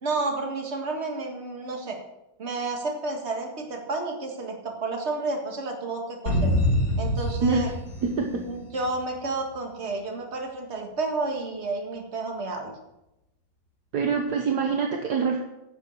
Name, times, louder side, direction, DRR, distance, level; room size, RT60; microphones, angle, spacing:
voice 1, 0.0-2.0 2.4-6.5 7.0-7.7 8.5-12.7, right 3 dB, 35° right, 2 dB, 1.9 m, -31 dB
sound 1, 6.3-9.0, left 1 dB, 55° left, 3.1 m, -25 dB
voice 2, 8.0-8.5 13.9-15.4, right 5 dB, 60° right, 2 dB, 1.5 m, -25 dB
10.5 x 7.2 x 6.4 m, 0.91 s
omnidirectional pair, 2.0 m